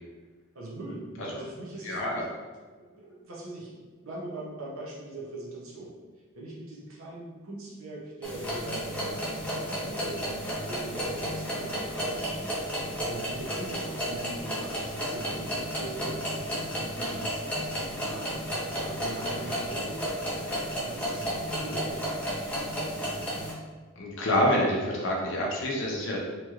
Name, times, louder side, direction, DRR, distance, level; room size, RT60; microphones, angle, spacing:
voice 1, 0.5-2.3 2.8-5.9 6.3-12.3 13.1-22.2, right 2 dB, 75° right, -4 dB, 0.7 m, -41 dB
voice 2, 1.8-2.2 19.4-19.5 24.0-26.2, left 1 dB, 60° left, -2 dB, 0.6 m, -27 dB
sound 1, 8.2-23.5, equal, 5° left, 0.6 m, -32 dB
3.0 x 2.9 x 2.4 m, 1.4 s
head